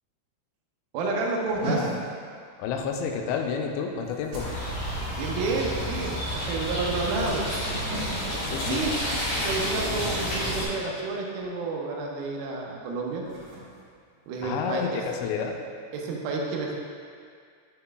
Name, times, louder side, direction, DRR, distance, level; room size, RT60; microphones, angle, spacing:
voice 1, 0.9-1.9 5.2-7.5 8.5-9.1 9.4-13.2 14.3-15.0 15.9-16.7, right 3 dB, 85° right, -1 dB, 2.1 m, -30 dB
sound 1, 1.5-11.1 11.4-11.8 12.1-12.4 13.0-14.9, right 2 dB, 55° right, 2.0 m, -40 dB
voice 2, 1.6-1.9 2.6-4.5 8.4-8.8 14.4-15.6, left 6 dB, 90° left, 3 dB, 2.8 m, -30 dB
sound 2, 4.4-10.7, equal, 60° left, 2.0 m, -30 dB
6.9 x 6.3 x 2.2 m, 2.2 s
omnidirectional pair, 4.9 m